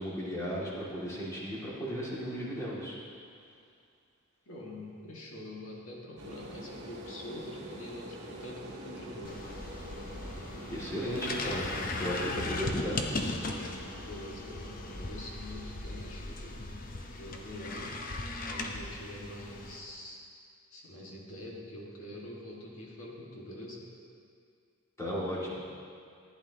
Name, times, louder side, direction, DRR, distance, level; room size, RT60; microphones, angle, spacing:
voice 1, 0.0-3.0 10.7-13.0 25.0-25.6, equal, 15° left, -7 dB, 2.2 m, -35 dB
voice 2, 4.5-9.4 14.1-16.6 17.1-17.9 18.5-20.2 20.7-23.9, left 1 dB, 70° left, -3 dB, 1.8 m, -45 dB
sound 1, 6.2-14.4, right 1 dB, 60° right, 1.7 m, -46 dB
sound 2, 9.2-19.8, left 2 dB, 40° left, 0.7 m, -38 dB
14.0 x 10.0 x 2.9 m, 2.3 s
head